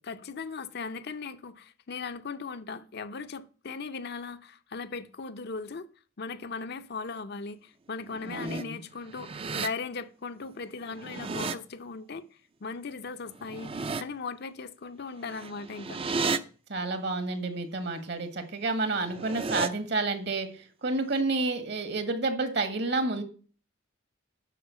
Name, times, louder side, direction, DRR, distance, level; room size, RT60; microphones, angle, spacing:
voice 1, 0.0-5.9 6.2-12.3 12.6-16.0, left 4 dB, 55° left, 0.6 m, -38 dB
sound 1, 8.0-8.6 9.0-9.7 10.8-11.5 13.3-14.0 15.2-16.4 18.9-19.7, right 4 dB, 30° right, 0.5 m, -33 dB
voice 2, 8.2-8.8 16.7-23.2, right 3 dB, 60° right, 1.6 m, -30 dB
11.0 x 4.4 x 6.9 m
head